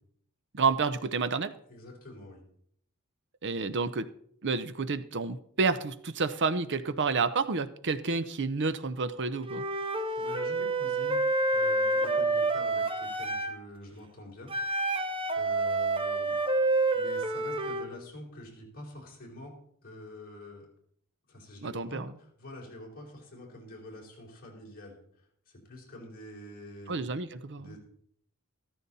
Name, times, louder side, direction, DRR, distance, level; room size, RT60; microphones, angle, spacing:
voice 1, 0.5-1.6 3.4-4.1 4.4-9.7 21.6-22.1 26.9-27.8, right 4 dB, 55° right, 13 dB, 0.7 m, -30 dB
voice 2, 1.7-2.4 10.2-11.3 11.5-15.1 15.4-16.4 16.9-19.5 19.8-20.7 21.3-27.1 27.6-27.8, left 1 dB, 40° left, -2 dB, 4.1 m, -46 dB
Wind instrument woodwind instrument, 9.5-13.5 14.5-17.9, right 2 dB, 25° right, 1.0 m, -28 dB
13.5 x 13.5 x 4.2 m, 0.65 s
head